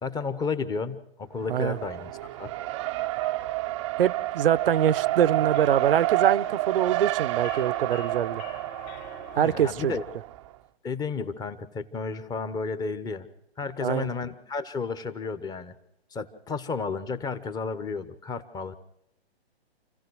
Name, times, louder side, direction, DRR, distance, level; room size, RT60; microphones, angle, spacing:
voice 1, 0.0-2.5 9.3-10.0 10.8-13.3 13.6-15.7 16.1-18.8, left 4 dB, 10° left, 1.1 m, -32 dB
Race car auto racing, 1.4-10.5, right 17 dB, 30° right, 0.7 m, -29 dB
voice 2, 4.0-8.4 9.3-9.9 13.8-14.1, right 10 dB, 60° right, 0.9 m, -24 dB
sound 1, 4.5-9.7, left 11 dB, 45° left, 2.0 m, -48 dB
29.0 x 16.0 x 6.4 m
hypercardioid pair, 140°, 32 cm